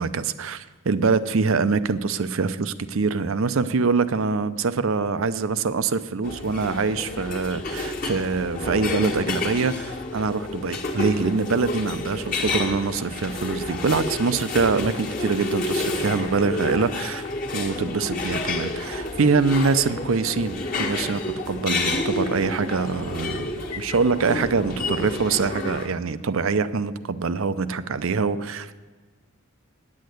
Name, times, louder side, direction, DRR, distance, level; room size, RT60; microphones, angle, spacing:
voice 1, 0.0-17.2 17.5-21.2 21.5-23.5 23.8-28.7, right 4 dB, 70° right, 14 dB, 0.6 m, -24 dB
sound 1, 6.2-25.9, left 2 dB, 40° left, 1.4 m, -30 dB
9.5 x 8.6 x 7.8 m, 1.4 s
head